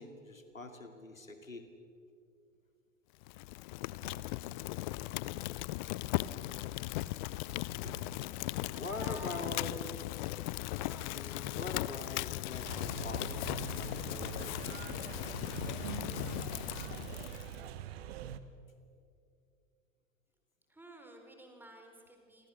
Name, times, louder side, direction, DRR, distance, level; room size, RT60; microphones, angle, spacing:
voice 1, 0.0-1.7 4.0-4.2 7.8-8.2 8.8-9.7 11.1-14.7, left 2 dB, 85° left, 6 dB, 2.6 m, -44 dB
Fire, 3.2-17.6, left 18 dB, 35° left, 0.6 m, -38 dB
voice 2, 8.3-9.5 10.8-11.6 20.7-22.5, right 1 dB, 5° right, 3 dB, 4.1 m, -53 dB
sound 1, 12.6-18.4, right 10 dB, 50° right, 1.5 m, -43 dB
30.0 x 24.5 x 6.4 m, 2.5 s
figure-of-eight pair, 90°, 39 cm